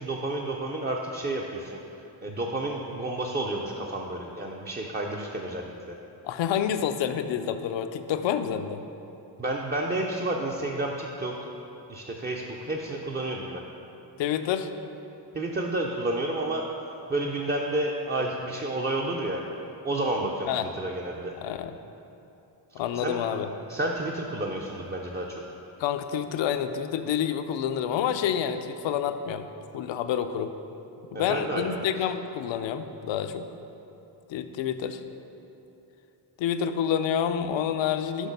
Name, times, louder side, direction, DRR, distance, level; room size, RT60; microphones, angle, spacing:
voice 1, 0.0-5.7 9.4-11.4 11.9-13.6 15.3-16.7 17.1-19.4 19.8-21.3 22.7-23.2 23.7-25.4 31.1-31.8, right 2 dB, 25° right, -1 dB, 0.4 m, -30 dB
voice 2, 6.2-8.8 14.2-14.7 20.5-20.7 21.4-21.7 22.7-23.5 25.8-29.5 29.7-30.5 31.1-33.5 34.3-35.0 36.4-38.3, left 9 dB, 85° left, 9 dB, 0.5 m, -28 dB
6.2 x 5.5 x 5.2 m, 2.9 s
cardioid pair, 110°, 44 cm